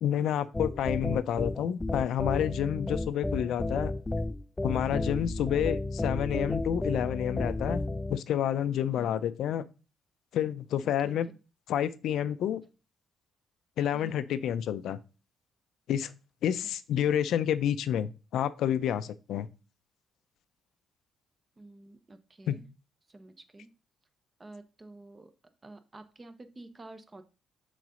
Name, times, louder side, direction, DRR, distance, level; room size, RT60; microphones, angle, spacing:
voice 1, 0.0-3.9 4.6-7.8 8.1-9.6 10.3-11.3 11.7-12.6 13.8-15.0 15.9-16.1 16.4-19.5 22.5-22.6, left 10 dB, 75° left, 14 dB, 0.5 m, -29 dB
sound 1, 0.5-8.2, left 2 dB, 15° left, 0.3 m, -32 dB
voice 2, 8.9-9.2 10.8-11.1 13.9-14.2 21.6-22.7 23.1-23.7 24.4-25.3 25.6-27.2, right 2 dB, 25° right, 9 dB, 1.0 m, -50 dB
6.4 x 3.9 x 5.1 m, 0.32 s
cardioid pair, 90°, 0 cm